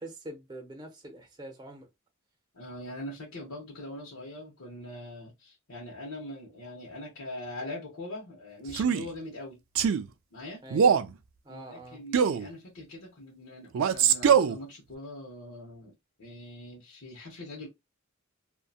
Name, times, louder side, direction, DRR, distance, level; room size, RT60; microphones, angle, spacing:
voice 1, 0.0-1.9 10.6-10.9 11.4-12.0, right 1 dB, 20° right, 0.6 m, -44 dB
voice 2, 2.5-9.6 10.3-10.6 11.5-17.7, left 1 dB, 70° left, 0.9 m, -42 dB
Male speech man speaking, 8.7-9.1 9.8-10.0 10.7-11.1 12.1-12.5 13.7-14.6, right 7 dB, 65° right, 0.3 m, -22 dB
2.7 x 2.2 x 2.3 m
head